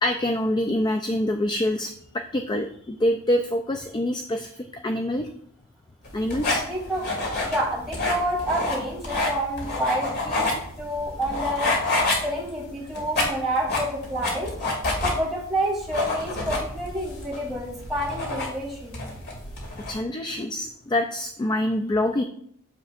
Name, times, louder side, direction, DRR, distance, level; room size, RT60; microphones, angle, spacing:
voice 1, 0.0-5.3 6.1-6.6 19.9-22.2, left 1 dB, 20° left, 5 dB, 0.4 m, -26 dB
sound 1, 6.0-19.9, left 2 dB, 50° left, 2.3 m, -28 dB
voice 2, 6.7-7.1 7.4-10.5 10.8-11.7 12.2-14.5 15.0-19.0, right 1 dB, ahead, -5 dB, 2.8 m, -28 dB
9.4 x 7.0 x 2.5 m, 0.66 s
head